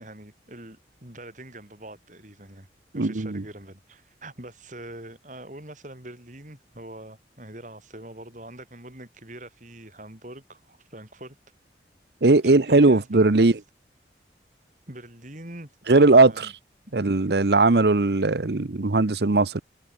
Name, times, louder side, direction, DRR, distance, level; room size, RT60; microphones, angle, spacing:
voice 1, 0.0-2.7 2.9-11.4 12.4-13.5 14.9-16.5 16.9-17.0, right 1 dB, 45° right, 6.0 m, -43 dB
voice 2, 3.0-3.4 12.2-13.5 15.9-16.3 16.9-19.6, right 3 dB, 65° right, 0.9 m, -18 dB
head